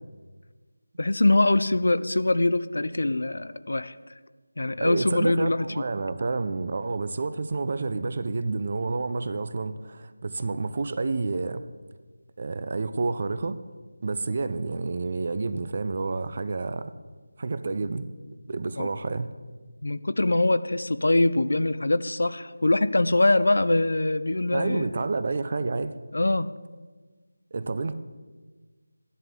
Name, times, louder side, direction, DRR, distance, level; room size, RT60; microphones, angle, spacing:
voice 1, 1.0-3.9 4.6-5.7 18.8-18.9 19.8-24.9 26.1-26.5, left 2 dB, 65° left, 14 dB, 0.5 m, -23 dB
voice 2, 4.8-11.6 12.4-13.6 14.0-16.9 17.4-18.1 18.5-19.3 24.5-25.9 27.5-27.9, right 3 dB, 35° right, 12 dB, 0.5 m, -29 dB
13.5 x 11.0 x 3.7 m, 1.4 s
figure-of-eight pair, 175°, 0 cm